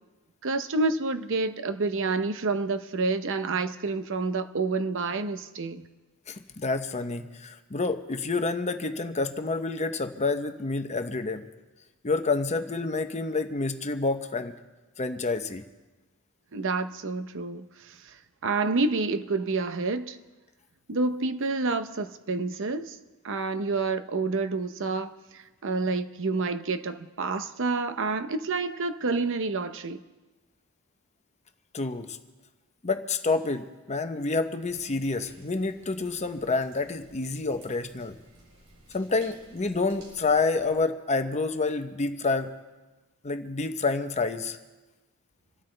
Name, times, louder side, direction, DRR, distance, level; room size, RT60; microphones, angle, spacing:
voice 1, 0.4-5.8 16.5-18.2 18.4-20.2 20.9-23.0 23.2-30.0, right 3 dB, 60° right, 0.8 m, -28 dB
voice 2, 6.3-11.5 12.0-14.5 15.0-15.6 31.7-32.2 32.8-38.2 38.9-42.5 43.2-44.6, left 3 dB, 30° left, 0.8 m, -28 dB
sound 1, 34.6-40.7, right 2 dB, 90° right, 6.5 m, -56 dB
26.5 x 13.0 x 3.3 m
head